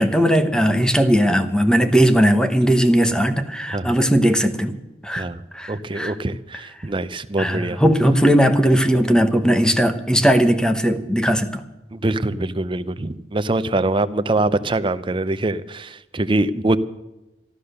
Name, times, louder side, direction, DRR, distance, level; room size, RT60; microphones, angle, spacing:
voice 1, 0.0-4.8 5.0-5.3 5.5-6.1 7.4-11.6, equal, 5° left, 7 dB, 1.0 m, -18 dB
voice 2, 5.7-7.8 11.9-16.8, right 2 dB, 30° right, 13 dB, 0.6 m, -23 dB
13.5 x 13.0 x 6.7 m, 0.99 s
head